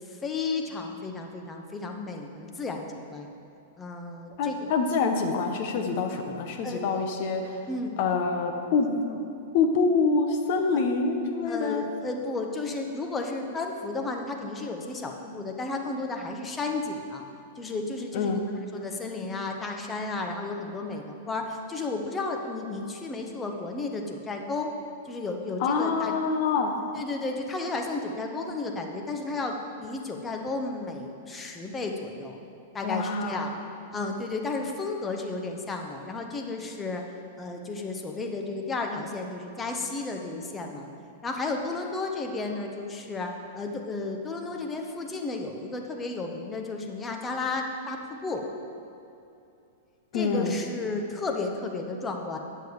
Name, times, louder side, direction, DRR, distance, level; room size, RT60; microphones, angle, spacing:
voice 1, 0.1-3.3 3.8-4.7 6.6-6.8 7.7-8.0 11.5-17.2 17.6-18.3 18.7-24.7 25.0-26.1 26.9-32.4 32.7-33.5 33.9-37.1 37.4-40.9 41.2-43.3 43.5-48.5 50.1-52.4, left 3 dB, 20° left, 3 dB, 1.0 m, -33 dB
voice 2, 4.4-7.6 8.0-9.2 9.5-11.8 18.1-18.4 25.6-26.7 32.8-33.6 50.1-50.6, left 4 dB, 50° left, 4 dB, 1.0 m, -26 dB
9.4 x 6.9 x 4.8 m, 2.6 s
figure-of-eight pair, 100°, 0 cm